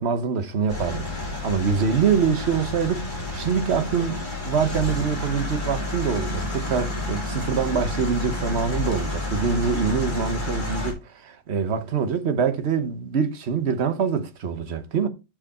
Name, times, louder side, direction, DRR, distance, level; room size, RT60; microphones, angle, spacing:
voice 1, 0.0-15.1, right 6 dB, 45° right, 1.1 m, -25 dB
sound 1, 0.7-10.9, left 2 dB, 30° left, 3.0 m, -30 dB
10.0 x 4.8 x 4.2 m
omnidirectional pair, 1.7 m